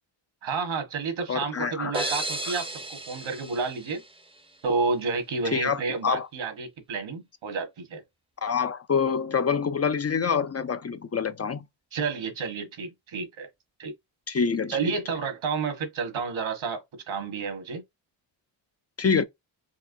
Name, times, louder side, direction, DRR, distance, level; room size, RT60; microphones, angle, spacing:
voice 1, 0.4-4.0 4.6-8.0 11.9-13.5 13.8-13.9 14.7-17.8, right 4 dB, 80° right, 1.6 m, -30 dB
voice 2, 1.3-2.1 5.5-6.3 8.4-11.6 14.3-14.8 19.0-19.2, left 6 dB, 35° left, 0.5 m, -26 dB
sound 1, 1.9-4.7, right 2 dB, 10° right, 0.6 m, -34 dB
4.7 x 3.1 x 2.6 m
cardioid pair, 80°, 47 cm